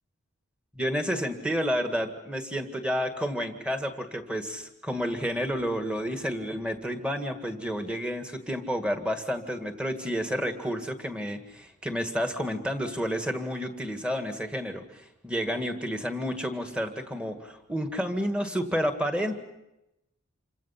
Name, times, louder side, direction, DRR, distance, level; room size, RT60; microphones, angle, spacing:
voice 1, 0.7-19.4, equal, 5° right, 6 dB, 1.8 m, -30 dB
28.0 x 25.0 x 5.8 m, 0.89 s
head